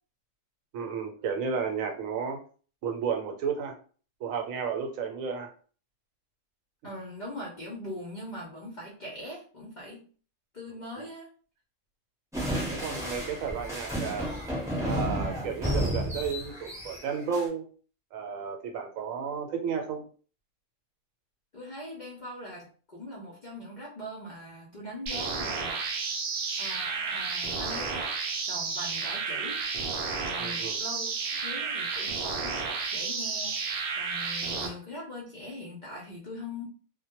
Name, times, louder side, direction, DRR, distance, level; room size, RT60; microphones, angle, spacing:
voice 1, 0.7-2.4 2.8-3.8 4.2-5.5 12.7-14.3 14.8-17.7 18.1-20.1 30.4-30.8, right 6 dB, 80° right, 4 dB, 1.0 m, -32 dB
voice 2, 6.8-10.0 10.5-11.3 21.5-25.8 26.6-28.1 28.4-29.6 30.2-32.6 32.9-33.6 33.9-36.6, left 1 dB, 55° left, -4 dB, 0.5 m, -41 dB
sound 1, 12.3-17.5, equal, 5° right, 0.6 m, -32 dB
sound 2, 25.1-34.7, right 4 dB, 60° right, 0.7 m, -32 dB
2.1 x 2.1 x 2.8 m, 0.41 s
omnidirectional pair, 1.4 m